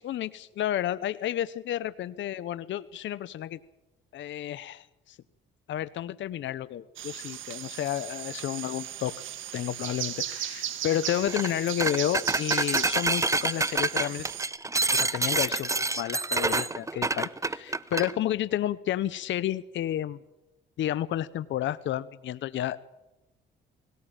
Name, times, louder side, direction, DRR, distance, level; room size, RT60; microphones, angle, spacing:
voice 1, 0.0-3.6 4.1-5.2 5.7-9.1 9.5-14.2 14.9-20.2 20.8-23.0, left 12 dB, 70° left, 15 dB, 0.8 m, -31 dB
sound 1, 7.0-14.5, right 11 dB, 80° right, 2.0 m, -36 dB
sound 2, 11.3-11.5 11.8-18.1, right 3 dB, 15° right, 0.8 m, -27 dB
19.0 x 18.0 x 8.9 m, 0.97 s
cardioid pair, 90°, 20 cm